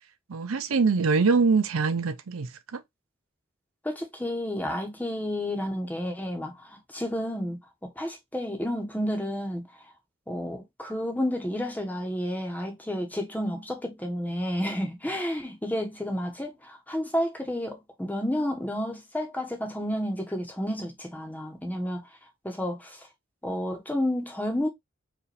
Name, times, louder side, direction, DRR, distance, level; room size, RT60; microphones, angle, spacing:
voice 1, 0.3-2.8, right 4 dB, 90° right, 0.6 m, -24 dB
voice 2, 3.8-9.7 10.3-22.0 22.4-23.1 23.4-24.7, equal, 10° left, 1.0 m, -31 dB
5.0 x 2.6 x 3.2 m
head